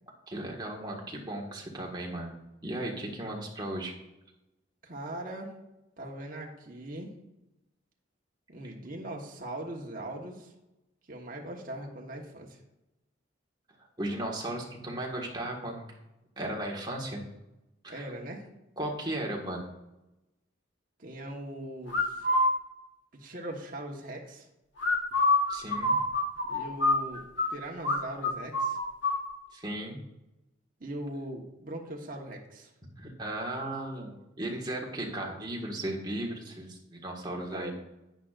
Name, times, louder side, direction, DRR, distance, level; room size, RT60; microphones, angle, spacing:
voice 1, 0.3-2.3 2.6-3.9 14.0-16.0 16.4-17.2 17.8-18.1 18.8-19.7 25.5-26.0 29.5-30.0 33.0-37.7, right 1 dB, 20° right, -1 dB, 1.6 m, -36 dB
voice 2, 4.8-5.5 6.0-7.1 8.5-10.5 11.1-12.6 17.9-18.5 21.0-22.3 23.1-24.5 26.5-28.8 30.8-32.7 37.5-37.7, right 1 dB, 45° right, 0 dB, 1.2 m, -40 dB
sound 1, 21.9-22.5 24.8-27.5 27.8-28.0 28.2-29.2, left 2 dB, 65° left, 1.4 m, -26 dB
11.0 x 9.0 x 2.5 m, 0.95 s
head